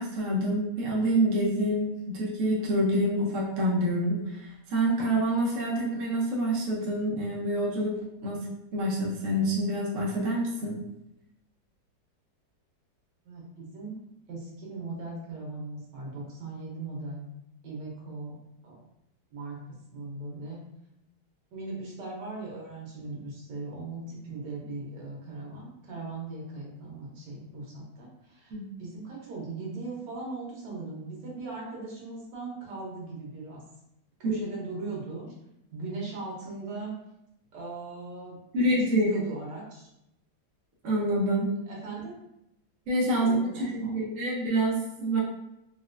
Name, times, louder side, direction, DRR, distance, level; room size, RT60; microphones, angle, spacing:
voice 1, 0.0-8.5 8.7-10.8 28.5-28.7 34.2-34.4 38.5-39.1 40.8-41.5 42.9-45.2, right 1 dB, 55° right, -4 dB, 1.1 m, -27 dB
voice 2, 13.2-14.0 14.3-17.2 17.6-18.3 18.6-18.8 19.3-19.6 19.9-20.6 21.5-33.6 34.2-35.3 35.7-36.9 37.5-39.9 41.7-42.1 43.2-44.0, right 3 dB, 90° right, -3 dB, 1.6 m, -39 dB
4.1 x 2.1 x 2.5 m, 0.84 s
omnidirectional pair, 1.8 m